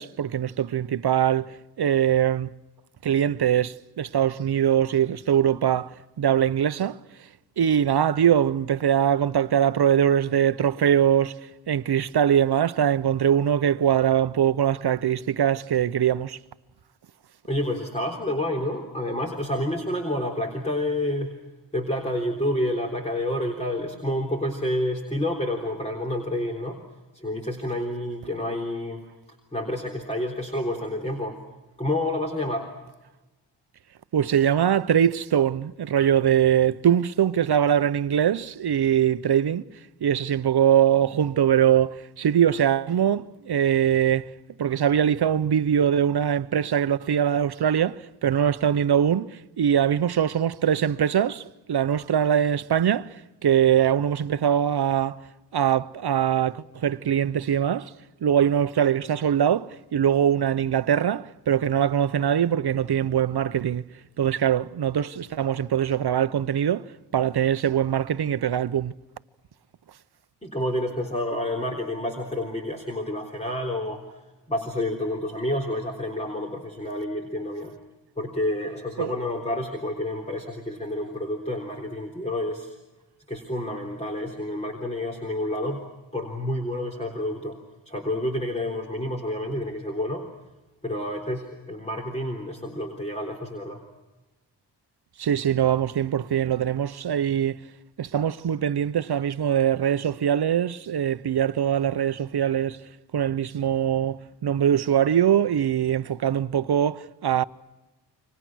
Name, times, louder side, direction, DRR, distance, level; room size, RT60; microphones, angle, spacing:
voice 1, 0.0-2.5 3.0-7.0 7.6-11.4 11.7-16.4 34.1-39.6 40.0-44.3 44.6-55.3 55.5-57.9 58.2-63.9 64.2-66.8 67.1-68.9 79.0-79.1 95.2-97.7 98.0-102.8 103.1-107.4, right 9 dB, 65° right, 0.8 m, -22 dB
voice 2, 17.5-21.3 21.7-26.8 27.1-29.0 29.5-31.4 31.8-32.7 70.4-74.0 74.5-77.7 78.2-82.7 83.3-85.8 86.1-87.6 87.9-90.2 90.8-93.8, left 1 dB, 15° left, 3.6 m, -29 dB
29.5 x 25.5 x 6.2 m
wide cardioid pair, 95°, 41 cm